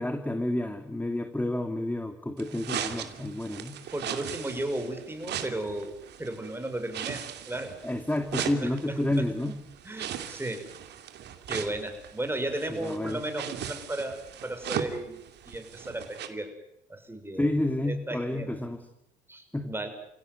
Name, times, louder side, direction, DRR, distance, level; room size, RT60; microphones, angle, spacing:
voice 1, 0.0-3.8 7.8-9.6 12.7-13.2 17.4-18.9 19.5-19.7, left 1 dB, 10° left, 8 dB, 2.3 m, -30 dB
sound 1, 2.4-16.3, right 9 dB, 60° right, 2.7 m, -38 dB
voice 2, 3.9-7.8 8.4-9.2 9.8-10.6 11.5-16.5 16.9-17.5 17.9-18.5 19.3-19.9, right 1 dB, 10° right, 7 dB, 6.2 m, -35 dB
29.5 x 17.0 x 9.5 m, 0.82 s
hypercardioid pair, 65°, 19 cm